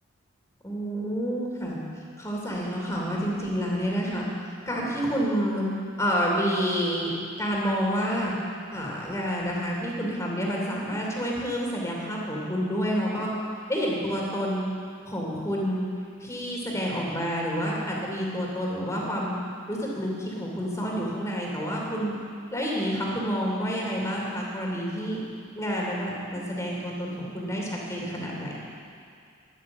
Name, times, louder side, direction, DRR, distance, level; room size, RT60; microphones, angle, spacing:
voice 1, 0.6-1.8 2.2-4.2 4.7-5.6 6.0-7.1 7.4-8.3 8.7-13.3 13.7-14.7 15.1-15.9 16.2-19.4 19.7-22.1 22.5-25.2 25.5-28.6, equal, 15° left, -3 dB, 3.0 m, -28 dB
13.5 x 11.5 x 7.3 m, 2.3 s
head